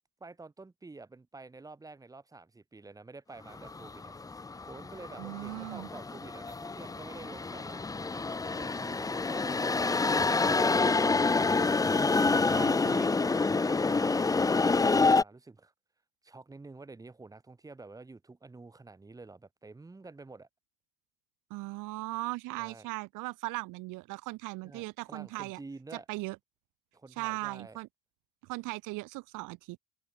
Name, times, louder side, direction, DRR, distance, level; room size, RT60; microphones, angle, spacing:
voice 1, 0.2-4.1 4.6-11.2 12.1-12.6 13.3-15.7 16.2-20.5 22.6-22.9 24.6-26.0 26.9-27.8, right 3 dB, 10° right, 5.0 m, -49 dB
sound 1, 3.6-15.2, left 3 dB, 10° left, 1.2 m, -27 dB
voice 2, 5.2-5.9 12.2-13.1 21.5-25.6 26.1-26.4 27.2-27.9 28.5-29.8, right 22 dB, 70° right, 4.1 m, -38 dB
open air
cardioid pair, 170°, 32 cm